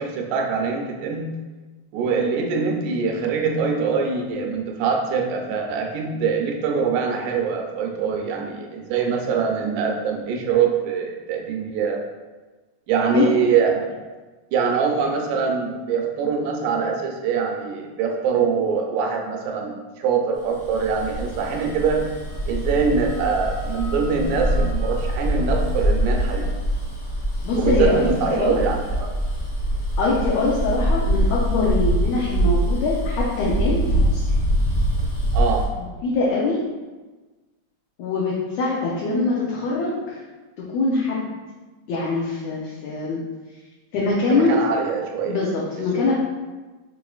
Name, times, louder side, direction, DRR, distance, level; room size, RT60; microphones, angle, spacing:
voice 1, 0.0-1.3 1.9-12.0 12.9-14.0 14.5-22.0 22.5-26.5 27.6-29.1 35.3-35.7 44.3-45.4 46.0-46.1, right 6 dB, 80° right, 2 dB, 1.8 m, -23 dB
Bus, 20.5-35.7, equal, 55° left, 0.8 m, -24 dB
Wind instrument woodwind instrument, 21.4-26.6, left 1 dB, 50° right, 1.0 m, -45 dB
voice 2, 27.4-28.6 30.0-34.3 35.8-36.6 38.0-40.2 40.6-41.2 41.9-43.2 43.9-44.5 45.3-46.2, left 3 dB, 75° left, -5 dB, 1.7 m, -23 dB
6.0 x 3.6 x 2.3 m, 1.2 s
omnidirectional pair, 3.6 m